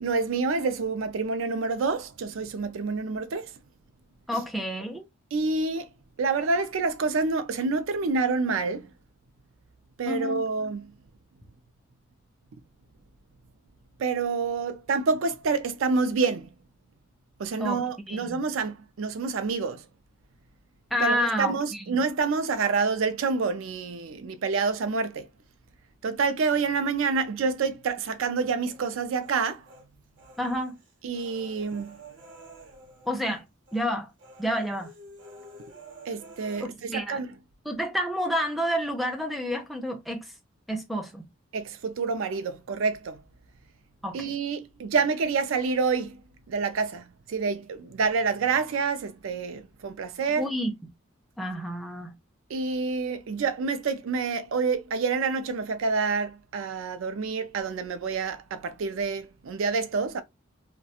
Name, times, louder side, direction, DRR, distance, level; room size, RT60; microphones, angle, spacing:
voice 1, 0.0-3.5 5.3-5.9 6.2-8.9 10.0-10.9 14.0-16.6 17.4-19.8 21.0-25.3 26.0-29.6 31.0-32.0 36.1-37.3 41.5-43.2 44.1-46.2 46.5-50.5 52.5-60.2, right 4 dB, 80° right, 0.4 m, -28 dB
voice 2, 4.3-5.1 10.1-10.4 17.6-17.8 18.1-18.4 20.9-22.0 30.4-30.7 33.1-33.5 33.7-34.1 34.4-34.9 36.6-37.2 37.7-40.3 40.7-41.3 44.0-44.4 50.4-50.7 51.4-52.1, equal, ahead, 0.3 m, -29 dB
Human voice, 28.6-29.8 30.2-33.4 33.7-33.9 34.2-36.7, right 2 dB, 60° right, 0.9 m, -49 dB
2.3 x 2.1 x 2.7 m
head